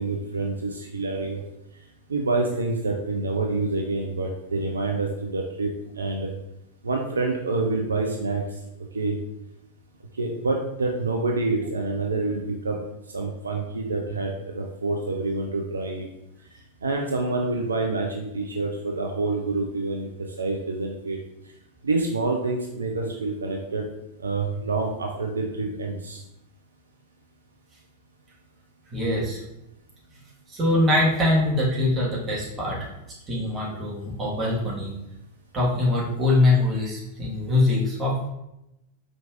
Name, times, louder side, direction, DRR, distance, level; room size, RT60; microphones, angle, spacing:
voice 1, 0.0-1.4 2.1-5.7 6.0-6.3 6.8-8.4 8.9-9.1 10.2-12.4 12.6-12.8 13.1-16.1 16.8-20.1 20.4-21.2 21.8-23.9 24.2-26.2, right 3 dB, 75° right, 2 dB, 0.4 m, -27 dB
voice 2, 28.9-29.4 30.5-32.9 33.3-34.9 35.5-38.3, left 2 dB, 25° right, -5 dB, 1.5 m, -23 dB
4.5 x 3.8 x 2.4 m, 0.87 s
figure-of-eight pair, 90°, 0 cm